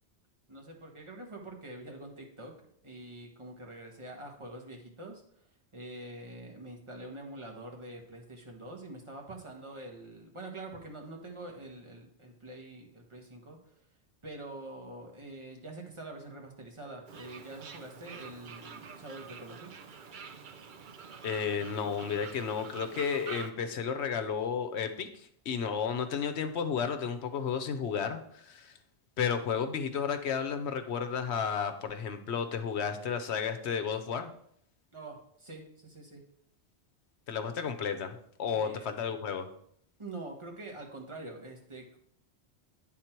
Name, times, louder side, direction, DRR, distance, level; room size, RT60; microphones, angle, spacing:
voice 1, 0.5-2.5 2.8-5.2 5.7-13.7 14.2-19.8 34.9-36.2 38.5-38.9 40.0-42.0, right 2 dB, 25° right, 1 dB, 1.3 m, -45 dB
Fowl, 17.1-23.5, right 6 dB, 55° right, 0.7 m, -47 dB
voice 2, 21.2-28.8 29.2-34.3 37.3-39.5, left 6 dB, 75° left, 9 dB, 1.0 m, -32 dB
9.4 x 3.9 x 4.4 m, 0.67 s
omnidirectional pair, 1.1 m